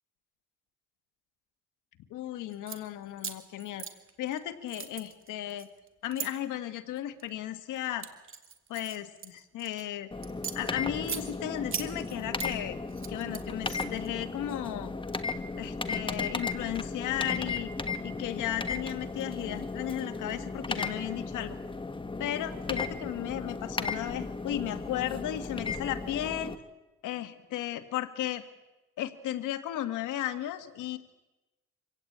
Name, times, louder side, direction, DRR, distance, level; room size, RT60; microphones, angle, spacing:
voice 1, 2.1-3.8 4.2-5.7 6.0-8.1 8.7-10.1 10.5-12.8 13.1-14.9 15.6-17.7 18.0-21.6 22.2-26.5 27.0-28.4 29.0-31.0, left 12 dB, 90° left, 9 dB, 1.7 m, -35 dB
sound 1, 2.5-2.8 3.2-4.4 4.7-6.3 7.0-7.3 7.8-9.8 10.2-11.2 11.7-12.5 12.9-14.1, right 7 dB, 45° right, 2.3 m, -39 dB
sound 2, 10.1-26.6, left 3 dB, 15° left, 1.4 m, -35 dB
25.5 x 17.0 x 8.7 m, 1.1 s
cardioid pair, 90°, 30 cm